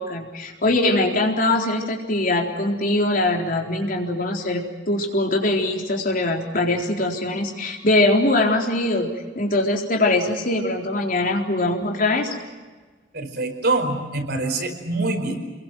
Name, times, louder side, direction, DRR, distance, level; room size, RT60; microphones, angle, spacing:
voice 1, 0.0-9.1 9.4-12.4, left 2 dB, 50° left, 1 dB, 4.0 m, -22 dB
voice 2, 13.1-15.4, right 2 dB, 60° right, 4 dB, 5.1 m, -25 dB
29.5 x 22.0 x 7.7 m, 1.3 s
head